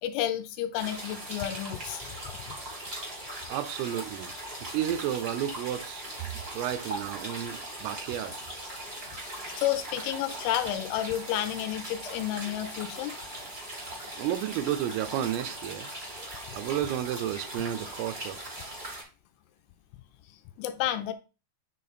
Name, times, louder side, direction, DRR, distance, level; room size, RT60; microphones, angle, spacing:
voice 1, 0.0-2.2 2.5-2.6 9.1-9.2 9.5-13.1 20.3-21.1, left 12 dB, 80° left, 3.0 m, -31 dB
sound 1, 0.7-19.0, right 1 dB, 50° right, 0.7 m, -40 dB
voice 2, 3.5-4.3 4.7-8.3 14.2-15.9 16.5-18.4, right 11 dB, 85° right, 3.3 m, -32 dB
9.4 x 3.7 x 4.1 m
omnidirectional pair, 5.9 m